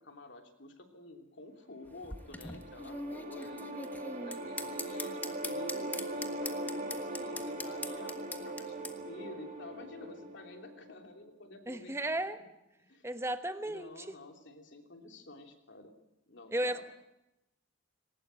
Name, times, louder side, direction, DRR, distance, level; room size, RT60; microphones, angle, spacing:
voice 1, 0.0-3.8 4.2-12.2 12.9-13.1 13.6-15.9 16.3-16.8, left 2 dB, 60° left, 4 dB, 3.1 m, -50 dB
sound 1, 1.9-8.9, left 2 dB, 10° left, 1.4 m, -41 dB
sound 2, 2.0-11.1, right 1 dB, 40° right, 2.6 m, -40 dB
voice 2, 11.7-12.4 13.0-14.2 16.5-16.8, right 1 dB, 15° right, 9 dB, 1.2 m, -34 dB
20.5 x 19.0 x 9.0 m, 0.91 s
head